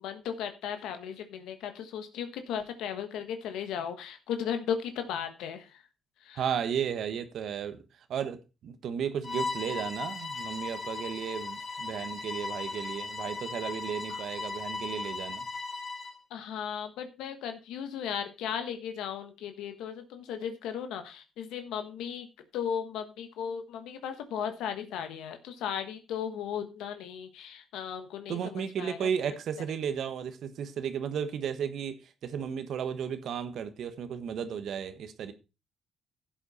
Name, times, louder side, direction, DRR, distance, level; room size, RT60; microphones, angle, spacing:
voice 1, 0.0-5.8 6.2-6.4 14.1-14.2 16.3-22.3 22.5-29.1, left 8 dB, 90° left, 1.3 m, -36 dB
voice 2, 6.4-7.8 8.1-15.4 28.3-31.9 32.2-35.3, right 8 dB, 70° right, 1.2 m, -34 dB
Bowed string instrument, 9.2-16.2, left 4 dB, 40° left, 3.7 m, -37 dB
11.0 x 7.9 x 4.2 m
cardioid pair, 90°, 0 cm